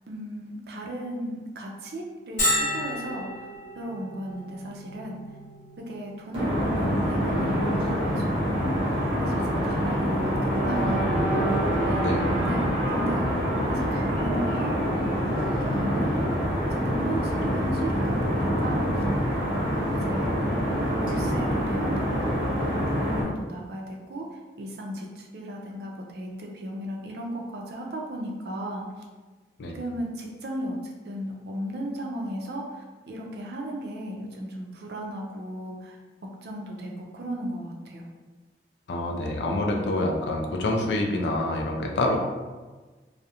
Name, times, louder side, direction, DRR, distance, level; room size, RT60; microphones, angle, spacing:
voice 1, 0.1-3.3 3.8-5.2 5.8-11.6 11.9-12.1 12.4-19.0 19.5-20.4 20.7-22.4 22.7-24.3 24.6-28.9 29.7-36.0 36.4-38.0, right 1 dB, 65° right, 0 dB, 0.4 m, -35 dB
Bell, 2.4-17.8, left 1 dB, 45° left, 0.8 m, -37 dB
sound 1, 6.3-23.2, equal, 30° right, 0.7 m, -25 dB
voice 2, 12.0-12.3 29.6-29.7 38.9-42.2, left 1 dB, 80° left, 2 dB, 0.4 m, -27 dB
2.3 x 2.0 x 2.8 m, 1.3 s
head